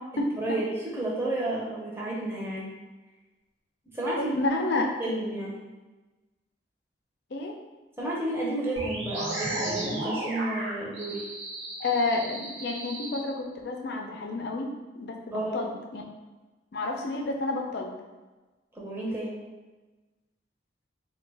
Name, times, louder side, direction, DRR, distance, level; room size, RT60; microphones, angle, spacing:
voice 1, 0.4-0.7 0.9-2.7 3.9-4.3 4.8-5.6 8.0-11.2 15.3-15.5 18.8-19.4, right 1 dB, 15° right, -6 dB, 0.7 m, -31 dB
voice 2, 4.2-4.9 7.3-7.5 11.8-16.0 16.7-17.9, left 2 dB, 65° left, 1 dB, 0.4 m, -30 dB
sound 1, 8.8-13.2, right 1 dB, 80° right, 0.8 m, -34 dB
3.1 x 2.2 x 3.3 m, 1.2 s
head